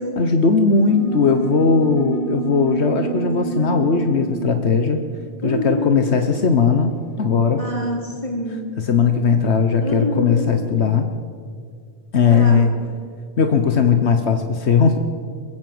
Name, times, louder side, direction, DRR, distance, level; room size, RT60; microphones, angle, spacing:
voice 1, 0.2-5.0 5.4-7.7 8.9-11.1 12.1-12.7 13.4-15.0, left 5 dB, 80° left, 6 dB, 1.4 m, -18 dB
sound 1, 0.8-6.7, right 7 dB, 50° right, 1.5 m, -29 dB
voice 2, 5.4-6.1 7.6-8.6 9.8-10.5 12.3-12.8, left 1 dB, 30° left, -1 dB, 4.2 m, -26 dB
22.5 x 15.5 x 7.9 m, 2.1 s
omnidirectional pair, 1.1 m